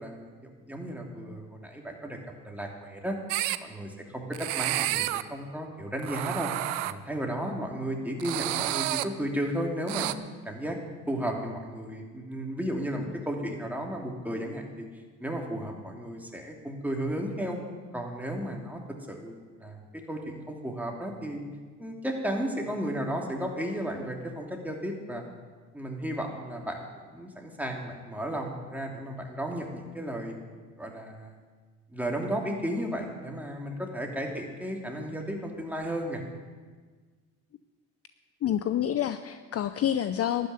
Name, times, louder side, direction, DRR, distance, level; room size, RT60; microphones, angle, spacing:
voice 1, 0.0-2.2 2.4-3.2 3.6-6.5 6.8-10.1 10.4-10.8 11.1-14.9 15.2-17.6 17.9-18.8 19.1-21.4 21.8-25.2 25.7-30.4 30.8-31.4 31.9-36.2, equal, 5° right, 0 dB, 2.8 m, -34 dB
sound 1, 3.3-3.6 4.3-5.2 6.0-6.9 8.2-9.1 9.9-10.1, right 16 dB, 85° right, 0.5 m, -30 dB
voice 2, 38.4-40.5, left 10 dB, 40° left, 11 dB, 0.6 m, -28 dB
12.0 x 6.7 x 9.5 m, 1.5 s
hypercardioid pair, 60°, 37 cm